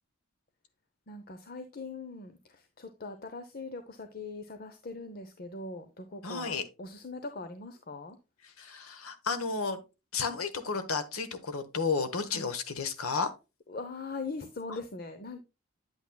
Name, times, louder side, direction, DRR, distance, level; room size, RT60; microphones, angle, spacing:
voice 1, 1.1-8.2 12.3-12.5 13.7-15.4, left 3 dB, 45° left, 0.7 m, -41 dB
voice 2, 6.2-6.6 8.4-9.8 10.1-13.3 14.7-14.8, left 4 dB, 85° left, 1.1 m, -32 dB
8.8 x 8.3 x 2.2 m
head